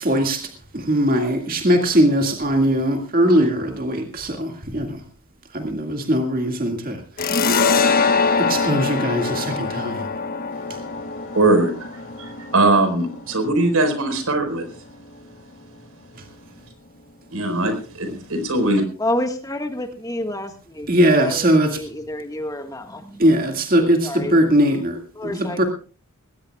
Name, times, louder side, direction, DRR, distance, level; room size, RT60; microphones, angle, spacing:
voice 1, 0.0-5.0 5.5-7.3 8.4-10.1 20.9-21.8 23.2-25.6, equal, 40° right, 4 dB, 2.1 m, -20 dB
sound 1, 7.2-14.4, left 4 dB, 40° left, 1.3 m, -23 dB
voice 2, 11.3-11.9 12.2-14.7 17.3-18.8, right 2 dB, 80° right, 7 dB, 4.6 m, -20 dB
voice 3, 19.0-23.3 24.0-24.4 25.1-25.6, left 1 dB, 15° left, 6 dB, 1.6 m, -29 dB
20.0 x 18.0 x 2.4 m, 0.37 s
head